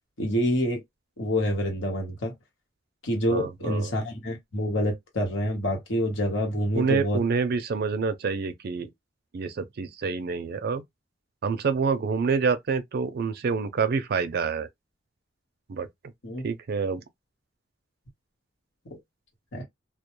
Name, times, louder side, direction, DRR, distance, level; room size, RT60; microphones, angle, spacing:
voice 1, 0.2-0.8 1.2-2.3 3.0-7.2 16.2-16.4 19.5-19.6, equal, 75° left, 1.1 m, -27 dB
voice 2, 3.3-3.9 6.7-8.9 9.3-10.8 11.4-14.7 15.7-15.9 16.4-17.0, right 5 dB, 55° right, 0.4 m, -27 dB
2.2 x 2.2 x 3.0 m
head